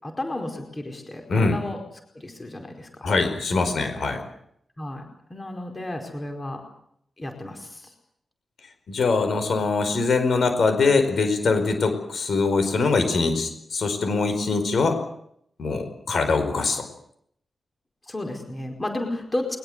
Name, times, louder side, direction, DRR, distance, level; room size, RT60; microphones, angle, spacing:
voice 1, 0.0-1.8 2.1-3.0 4.8-5.0 5.3-6.6 7.2-7.9 18.1-19.6, left 1 dB, 20° left, 4 dB, 4.7 m, -32 dB
voice 2, 3.0-4.2 8.9-15.0 15.6-16.9, left 4 dB, 60° left, 8 dB, 5.0 m, -23 dB
22.0 x 21.0 x 8.1 m, 0.70 s
wide cardioid pair, 155°, 0 cm